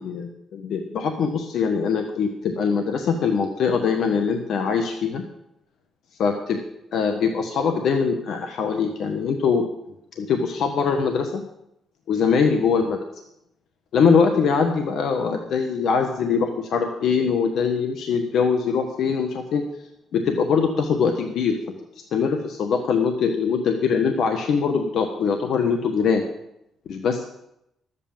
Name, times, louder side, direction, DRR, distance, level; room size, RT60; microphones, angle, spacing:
voice 1, 0.0-5.2 6.2-6.6 6.9-9.7 10.2-11.5 12.1-13.0 13.9-19.6 20.1-21.6 22.1-26.2 26.9-27.3, left 5 dB, 70° left, 5 dB, 1.4 m, -22 dB
12.5 x 8.3 x 7.4 m, 0.79 s
cardioid pair, 90°, 0 cm